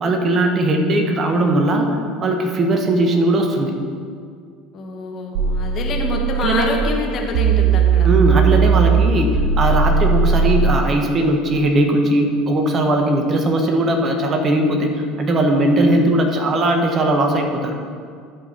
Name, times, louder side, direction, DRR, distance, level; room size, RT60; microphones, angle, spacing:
voice 1, 0.0-1.9 2.2-3.7 6.4-6.7 8.0-17.8, right 1 dB, 40° right, 3 dB, 1.4 m, -18 dB
voice 2, 4.7-8.1, left 3 dB, 45° left, 1 dB, 1.6 m, -26 dB
sound 1, 5.3-6.8 7.3-10.8, right 6 dB, 70° right, 0.7 m, -17 dB
11.5 x 5.1 x 5.8 m, 2.1 s
hypercardioid pair, 70°, 0 cm